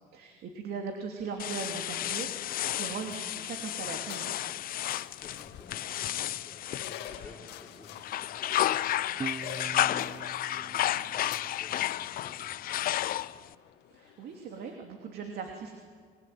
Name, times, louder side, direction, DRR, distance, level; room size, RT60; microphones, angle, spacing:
voice 1, 0.0-4.4 13.9-15.7, right 5 dB, 70° right, 3 dB, 3.0 m, -39 dB
sound 1, 1.2-14.7, left 11 dB, 85° left, 2.0 m, -50 dB
sound 2, 1.4-7.6 8.0-13.5, left 13 dB, 60° left, 0.6 m, -32 dB
voice 2, 2.8-3.1 4.9-13.3, left 2 dB, 10° left, -1 dB, 4.6 m, -54 dB
Guitar, 9.2-12.4, right 5 dB, 25° right, 0.6 m, -43 dB
27.5 x 21.5 x 9.5 m, 2.1 s
cardioid pair, 110°, 17 cm